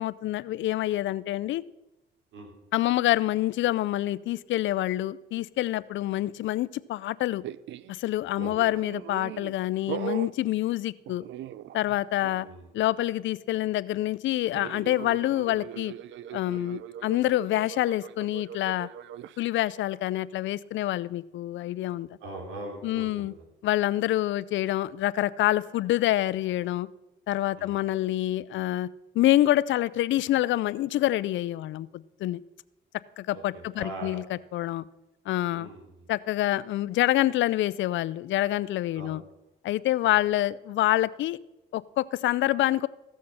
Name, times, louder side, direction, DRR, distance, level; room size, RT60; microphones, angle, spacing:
voice 1, 0.0-1.6 2.7-7.4 7.9-11.2 11.7-12.5 12.7-15.9 16.3-18.9 19.4-22.1 22.8-23.3 23.6-26.9 27.3-28.9 29.1-32.4 33.2-34.2 34.5-34.9 35.3-35.7 36.1-39.2 39.6-41.4 41.7-42.9, left 14 dB, 75° left, 0.4 m, -26 dB
sound 1, 7.4-7.9 8.4-9.6 9.9-10.3 11.1-12.0 12.2-12.5 14.5-19.4, right 11 dB, 70° right, 0.4 m, -40 dB
voice 2, 22.2-23.5 27.6-27.8 33.3-34.2 35.5-36.1 38.9-39.1 40.0-40.1, right 2 dB, 90° right, 3.3 m, -41 dB
15.5 x 6.5 x 5.5 m
cardioid pair, 90°, 20 cm